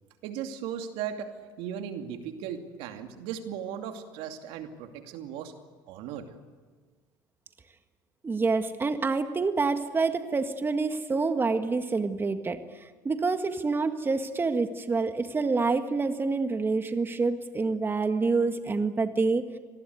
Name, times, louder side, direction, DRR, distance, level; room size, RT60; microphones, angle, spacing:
voice 1, 0.2-5.5 5.9-6.3, right 8 dB, 75° right, 5 dB, 2.6 m, -37 dB
voice 2, 8.2-19.6, right 4 dB, 25° right, 8 dB, 1.7 m, -27 dB
25.5 x 19.5 x 9.6 m, 1.4 s
supercardioid pair, 80°, 9 cm